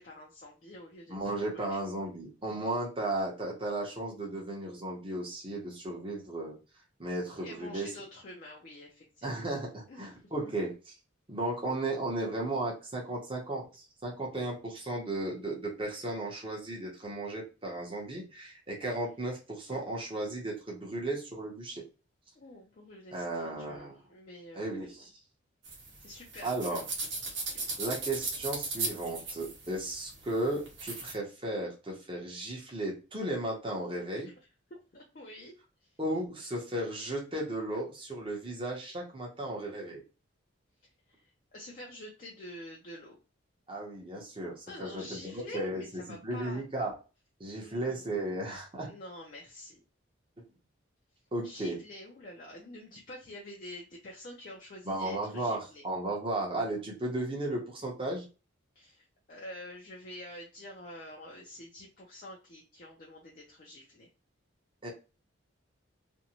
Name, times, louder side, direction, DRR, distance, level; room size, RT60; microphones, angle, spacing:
voice 1, 0.0-1.2 1.5-1.8 7.4-9.3 9.9-10.5 22.4-25.0 26.0-26.8 27.1-27.8 34.1-34.3 34.9-35.5 35.8-35.9 41.1-43.2 44.7-46.6 47.6-48.0 48.9-49.8 51.4-55.8 58.8-64.1, left 1 dB, 45° left, -1 dB, 0.5 m, -47 dB
voice 2, 1.1-6.6 7.0-7.9 9.2-10.9 11.3-21.8 23.1-24.0 24.5-25.1 26.4-26.8 27.8-34.3 36.0-40.0 43.7-46.9 47.4-48.9 51.3-51.8 54.8-58.2 64.8-64.9, right 1 dB, 25° right, -2 dB, 0.8 m, -35 dB
sound 1, 25.6-31.1, right 3 dB, 60° right, 0.9 m, -38 dB
2.6 x 2.1 x 2.8 m, 0.32 s
head